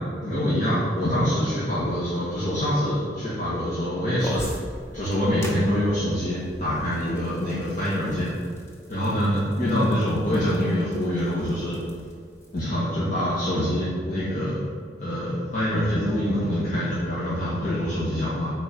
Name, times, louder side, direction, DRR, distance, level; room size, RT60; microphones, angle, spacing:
voice 1, 0.2-4.4 4.9-8.3 8.9-11.8 12.5-14.6 15.0-18.5, equal, 45° left, -10 dB, 1.8 m, -25 dB
sound 1, 4.2-12.6, equal, 15° left, 1.2 m, -41 dB
8.9 x 4.4 x 5.4 m, 2.1 s
head